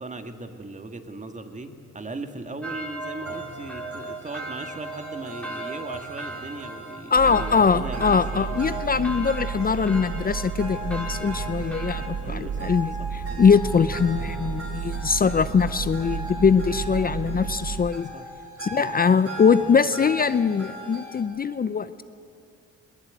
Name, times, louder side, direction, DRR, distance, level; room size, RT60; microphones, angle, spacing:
voice 1, 0.0-8.6 12.2-12.7 13.0-13.4 18.1-18.3, right 2 dB, 25° right, 7 dB, 2.0 m, -38 dB
sound 1, 2.6-12.1, right 2 dB, 5° left, 3.0 m, -37 dB
sound 2, 3.2-21.2, equal, 50° right, 5.0 m, -39 dB
voice 2, 7.1-18.1 18.6-22.0, left 6 dB, 30° left, 14 dB, 0.6 m, -22 dB
sound 3, 7.1-17.9, right 7 dB, 80° right, 1.2 m, -33 dB
21.0 x 19.5 x 9.0 m, 2.5 s
cardioid pair, 90°, 30 cm